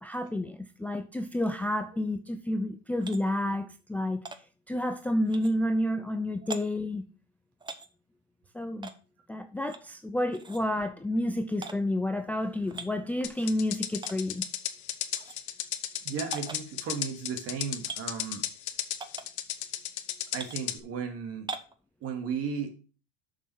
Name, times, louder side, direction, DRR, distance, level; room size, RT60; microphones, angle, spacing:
voice 1, 0.0-4.2 4.7-7.1 8.5-8.9 9.3-14.5, left 1 dB, 5° left, 0.5 m, -30 dB
ceramic pot small clay jar lid open close, 3.0-3.2 4.3-4.4 5.3-5.5 6.5-6.6 7.6-7.9 8.8-9.0 9.7-9.9 10.3-10.6 11.6-11.8 12.6-12.9 14.0-14.2 15.1-15.4 16.3-16.6 17.8-18.0 19.0-19.3 20.3-20.6 21.5-21.7, right 4 dB, 15° right, 0.9 m, -40 dB
hats extra, 13.2-20.8, left 12 dB, 90° left, 1.1 m, -34 dB
voice 2, 16.0-18.4 20.3-21.5 22.0-22.7, right 6 dB, 45° right, 2.3 m, -35 dB
6.9 x 5.9 x 6.3 m
supercardioid pair, 110°, 32 cm